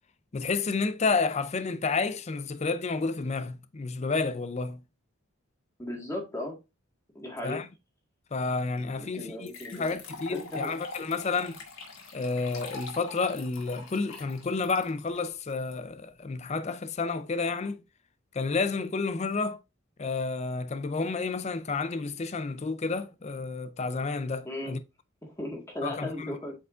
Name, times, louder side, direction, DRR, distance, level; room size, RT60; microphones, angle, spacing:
voice 1, 0.3-4.8 7.4-7.7 8.3-11.6 12.1-17.8 18.3-19.6 20.0-24.8 25.8-26.4, left 4 dB, 30° left, 0.4 m, -30 dB
voice 2, 5.8-6.6 7.2-7.6 8.9-9.8 10.3-10.7 24.4-24.8 25.2-26.6, left 1 dB, 15° left, 1.7 m, -36 dB
sound 1, 8.8-8.9 9.4-15.7, left 3 dB, 75° left, 1.8 m, -43 dB
8.1 x 4.7 x 2.5 m
head